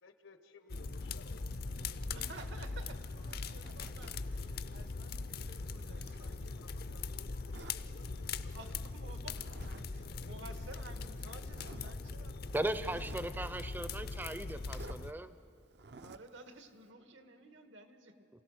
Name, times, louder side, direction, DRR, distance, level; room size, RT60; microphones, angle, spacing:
voice 1, 0.0-2.3 6.2-8.7, left 3 dB, 85° left, 9 dB, 1.2 m, -59 dB
sound 1, 0.7-15.1, left 4 dB, 50° left, 0.5 m, -41 dB
Zipper (clothing), 0.9-2.6 3.2-4.3 4.7-6.9 7.5-7.8 9.2-9.8 10.1-10.2 10.9-11.0 11.5-12.0 12.5-13.3 14.6-15.0 15.7-16.3, right 3 dB, 55° right, 0.5 m, -54 dB
voice 2, 2.0-7.1 8.1-8.2 8.5-9.4 9.6-13.6 16.0-18.3, right 2 dB, 80° right, 7 dB, 1.4 m, -54 dB
voice 3, 12.5-15.3, right 1 dB, 10° right, 12 dB, 0.5 m, -37 dB
27.0 x 16.5 x 6.3 m, 2.8 s
head